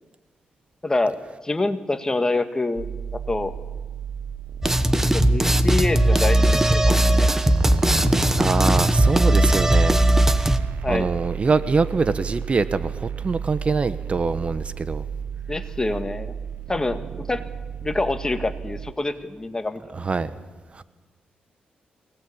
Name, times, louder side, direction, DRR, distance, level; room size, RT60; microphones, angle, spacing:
voice 1, 0.8-1.2 1.4-2.9 3.1-3.5 5.1-7.3 10.8-11.1 15.4-16.3 16.7-17.4 17.8-20.1, left 2 dB, 20° left, 1.8 m, -26 dB
sound 1, 2.8-18.9, right 7 dB, 65° right, 1.1 m, -33 dB
sound 2, 4.6-10.6, right 1 dB, 15° right, 1.4 m, -18 dB
voice 2, 8.4-10.0 10.9-15.0 19.9-20.3 20.7-20.8, right 4 dB, 40° right, 1.0 m, -24 dB
23.5 x 19.0 x 8.6 m
cardioid pair, 75°, 3 cm